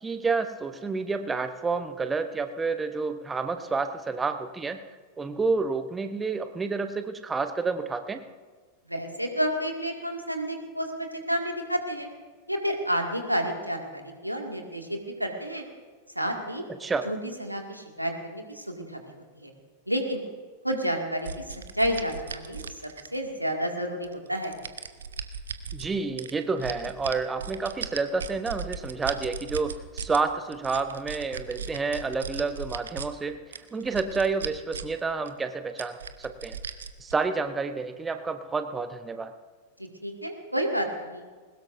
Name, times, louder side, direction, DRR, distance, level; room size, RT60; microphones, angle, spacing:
voice 1, 0.0-4.9 5.2-8.3 16.8-17.1 25.7-36.6 37.0-39.3, right 4 dB, 15° right, 9 dB, 0.9 m, -29 dB
voice 2, 8.9-12.1 12.5-15.6 16.2-16.6 17.0-19.5 19.9-20.2 20.6-21.5 21.7-24.5 39.8-41.3, equal, 90° right, 3 dB, 2.1 m, -30 dB
sound 1, 21.2-23.4 24.0-25.9 26.2-30.2 30.5-33.1 33.5-35.0 35.3-35.4 35.8-37.1, right 6 dB, 70° right, 0.9 m, -37 dB
21.0 x 20.0 x 2.7 m, 1.4 s
figure-of-eight pair, 90°, 0 cm